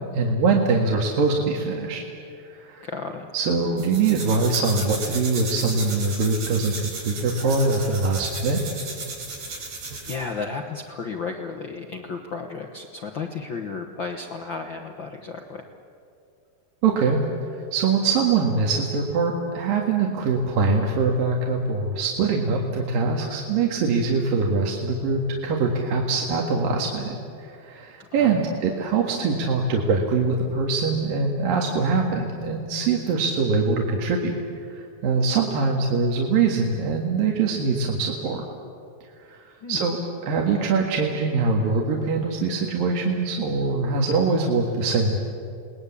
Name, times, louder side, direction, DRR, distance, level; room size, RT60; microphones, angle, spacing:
voice 1, 0.1-2.0 2.4-2.9 3.3-8.6 16.8-17.2 17.5-34.3 34.6-38.4 39.3-40.0 40.2-45.2, right 4 dB, 70° right, 0 dB, 3.5 m, -23 dB
voice 2, 2.8-3.3 10.1-15.7 28.0-28.5 39.6-39.8, left 4 dB, 85° left, 3 dB, 1.0 m, -33 dB
sound 1, 3.8-10.3, right 3 dB, 85° right, 6.7 m, -35 dB
29.5 x 20.0 x 8.5 m, 2.4 s
omnidirectional pair, 4.3 m